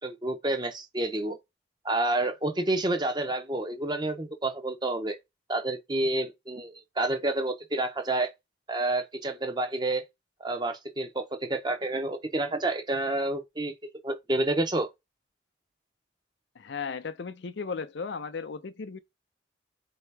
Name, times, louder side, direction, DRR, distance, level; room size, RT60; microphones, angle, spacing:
voice 1, 0.0-1.4 1.8-5.2 5.5-8.3 8.7-10.0 10.4-13.7 14.0-14.9, right 2 dB, 25° right, 0.7 m, -29 dB
voice 2, 16.6-19.0, left 5 dB, 70° left, 0.5 m, -35 dB
4.3 x 2.8 x 3.3 m
head